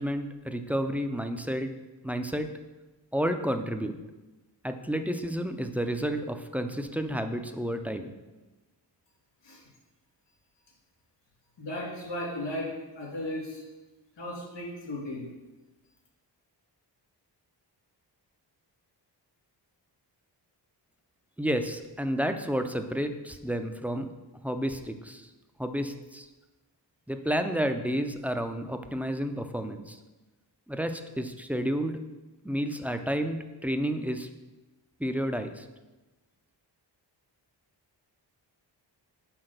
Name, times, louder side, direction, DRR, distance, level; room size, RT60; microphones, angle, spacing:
voice 1, 0.0-1.7 2.0-2.5 3.1-4.0 4.6-8.1 21.4-24.1 24.4-25.3 25.6-26.3 27.1-30.0 30.7-32.0 32.4-34.3 35.0-35.7, equal, 5° right, 7 dB, 0.3 m, -31 dB
voice 2, 11.6-12.7 13.0-13.6 14.2-15.3, left 1 dB, 85° left, -4 dB, 2.7 m, -35 dB
5.9 x 4.7 x 6.5 m, 1.1 s
wide cardioid pair, 135°, 43 cm